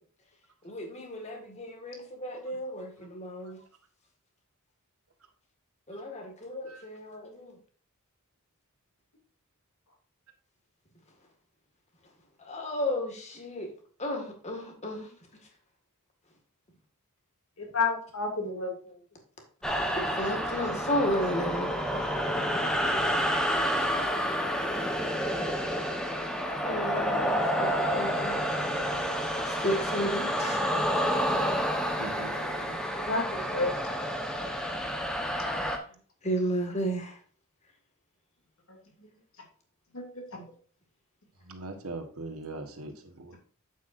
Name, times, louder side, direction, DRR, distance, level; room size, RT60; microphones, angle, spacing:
voice 1, 0.6-3.6 5.9-7.5 12.4-13.7 14.0-15.1 19.9-22.1 23.0-23.1 26.6-28.4 29.5-30.8 31.1-31.2 36.2-37.2, equal, 30° left, 1.9 m, -33 dB
voice 2, 17.6-19.0 32.9-33.7 39.9-40.4, left 3 dB, 70° left, 2.6 m, -31 dB
sound 1, 19.6-35.8, equal, 5° left, 1.0 m, -29 dB
voice 3, 31.9-32.8 41.4-43.4, right 2 dB, 85° right, 1.4 m, -41 dB
8.3 x 7.8 x 2.6 m
head